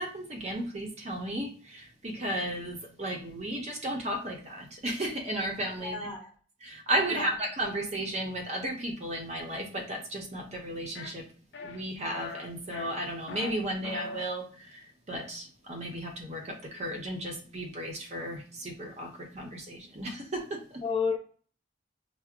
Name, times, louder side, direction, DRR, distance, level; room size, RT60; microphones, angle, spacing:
voice 1, 0.0-6.1 6.6-11.3 11.6-20.8, right 1 dB, 35° right, 2 dB, 0.7 m, -34 dB
voice 2, 5.8-6.3 7.1-7.3 20.8-21.2, left 5 dB, 25° left, 0 dB, 0.6 m, -31 dB
sound 1, 10.9-11.1 11.5-11.8 12.1-12.4 12.7-13.5 13.8-14.2, left 4 dB, 65° left, 0.6 m, -40 dB
5.8 x 2.1 x 2.4 m, 0.44 s
head